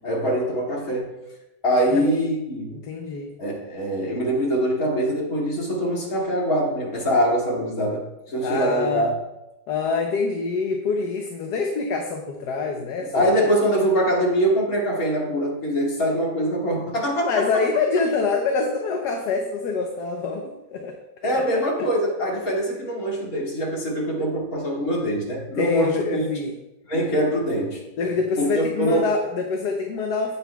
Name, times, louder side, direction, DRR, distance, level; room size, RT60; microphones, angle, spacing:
voice 1, 0.0-1.1 1.6-2.8 3.4-9.1 13.0-17.6 21.2-26.3 26.9-27.8 28.4-29.1, equal, 55° left, -3 dB, 2.7 m, -23 dB
voice 2, 2.7-3.3 8.4-9.0 9.7-13.3 17.2-20.9 21.3-21.4 25.6-26.5 28.0-30.4, left 4 dB, 70° left, 2 dB, 1.4 m, -25 dB
16.5 x 7.1 x 2.3 m, 0.96 s
omnidirectional pair, 1.9 m